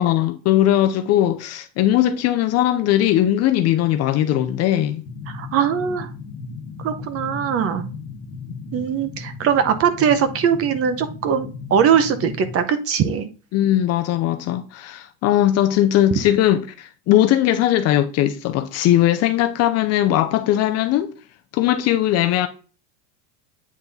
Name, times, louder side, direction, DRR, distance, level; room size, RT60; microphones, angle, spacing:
voice 1, 0.0-5.0 13.5-21.1 21.5-22.5, left 12 dB, 35° left, 0.5 m, -19 dB
sound 1, 5.0-12.6, left 4 dB, 65° left, 1.2 m, -36 dB
voice 2, 5.3-6.1 6.8-7.9 8.7-13.3, right 7 dB, 30° right, 0.7 m, -21 dB
8.5 x 3.5 x 4.0 m
supercardioid pair, 155°, 45 cm